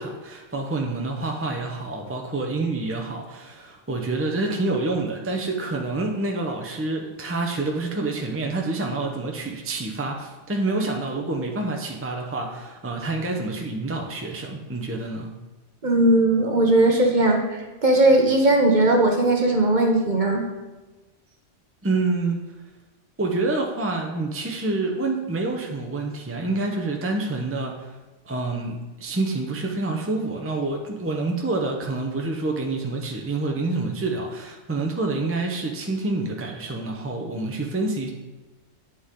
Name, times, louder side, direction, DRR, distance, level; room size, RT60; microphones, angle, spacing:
voice 1, 0.0-15.3 21.8-22.4 23.2-28.0 28.2-38.1, right 2 dB, 15° right, 1 dB, 0.8 m, -27 dB
voice 2, 15.8-20.4, right 2 dB, 40° right, 2 dB, 1.1 m, -18 dB
8.9 x 7.1 x 3.8 m, 1.2 s
omnidirectional pair, 1.3 m